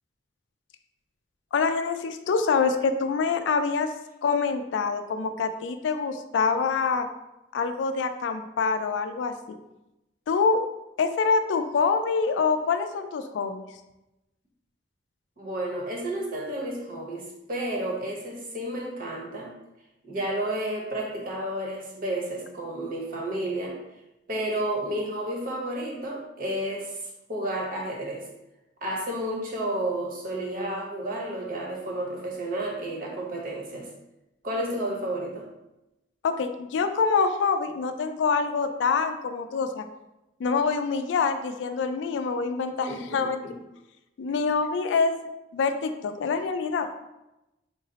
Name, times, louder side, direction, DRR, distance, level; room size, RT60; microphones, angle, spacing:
voice 1, 1.5-3.9 4.2-7.1 7.5-9.6 10.3-10.6 11.0-13.7 36.2-39.8 40.4-43.4 44.2-45.1 45.5-46.9, left 5 dB, 85° left, 8 dB, 0.3 m, -25 dB
voice 2, 15.4-19.5 20.0-23.7 24.3-28.2 28.8-33.9 34.4-35.4 42.9-43.5, right 1 dB, 50° right, -1 dB, 0.9 m, -31 dB
3.7 x 2.0 x 3.9 m, 0.94 s
head